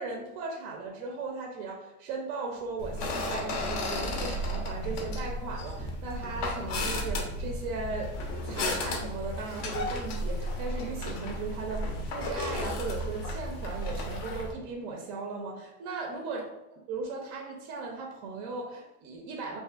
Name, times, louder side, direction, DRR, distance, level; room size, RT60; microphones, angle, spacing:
voice 1, 0.0-16.5 16.9-19.6, right 3 dB, 40° right, 1 dB, 0.4 m, -37 dB
sound 1, 2.6-14.3, right 2 dB, 5° right, 0.7 m, -50 dB
sound 2, 2.8-14.5, left 1 dB, 40° left, 0.5 m, -34 dB
sound 3, 8.1-14.4, left 3 dB, 90° left, 0.7 m, -49 dB
2.4 x 2.4 x 2.3 m, 0.95 s
hypercardioid pair, 110°, 44 cm